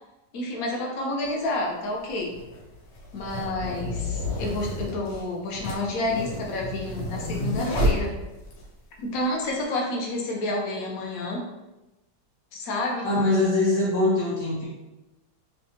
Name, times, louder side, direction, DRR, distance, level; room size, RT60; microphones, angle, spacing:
voice 1, 0.3-2.3 3.1-8.1 9.0-11.4 12.5-13.1, left 2 dB, 60° left, -1 dB, 1.1 m, -29 dB
sound 1, 1.2-1.3 2.2-8.7, left 1 dB, 80° left, 1.4 m, -30 dB
voice 2, 13.0-14.7, left 2 dB, 25° left, -8 dB, 1.1 m, -22 dB
3.3 x 3.1 x 2.8 m, 1.0 s
omnidirectional pair, 1.9 m